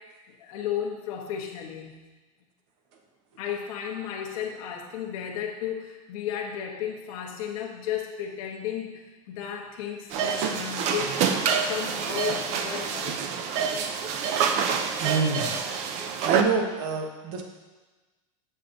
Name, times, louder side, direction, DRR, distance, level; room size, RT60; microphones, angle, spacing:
voice 1, 0.4-2.0 3.4-9.0 9.3-13.2, left 9 dB, 75° left, 0 dB, 1.0 m, -34 dB
sound 1, 10.1-16.4, right 6 dB, 40° right, 0.4 m, -27 dB
voice 2, 15.0-15.5 16.2-17.4, right 4 dB, 65° right, 2 dB, 1.1 m, -26 dB
7.2 x 6.7 x 2.6 m, 1.2 s
supercardioid pair, 160°, 18 cm